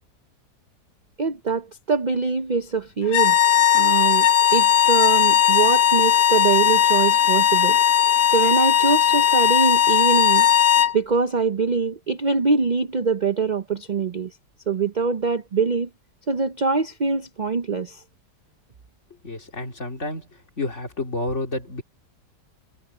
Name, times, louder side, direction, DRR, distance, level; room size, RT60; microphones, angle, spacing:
voice 1, 1.2-3.4 3.7-7.8 8.3-10.5 10.9-14.4 14.7-15.9 16.3-18.0, right 4 dB, 45° right, 0.6 m, -23 dB
sound 1, 3.1-11.0, left 9 dB, 80° left, 1.8 m, -17 dB
voice 2, 19.2-20.3 20.6-21.8, left 2 dB, 45° left, 3.2 m, -29 dB
omnidirectional pair, 1.7 m